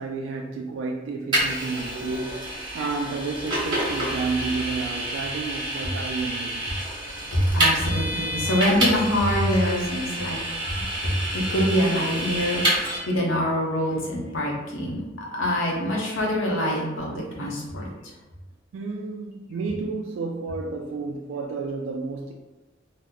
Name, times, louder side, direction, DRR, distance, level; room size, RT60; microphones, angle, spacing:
voice 1, 0.0-6.7 18.7-22.3, right 4 dB, 75° right, 1 dB, 0.3 m, -31 dB
Vehicle, 1.3-13.0, right 1 dB, 25° right, 1.0 m, -28 dB
voice 2, 7.2-10.4 11.0-17.9, equal, 75° left, -3 dB, 0.9 m, -25 dB
3.0 x 2.1 x 3.7 m, 1.1 s
head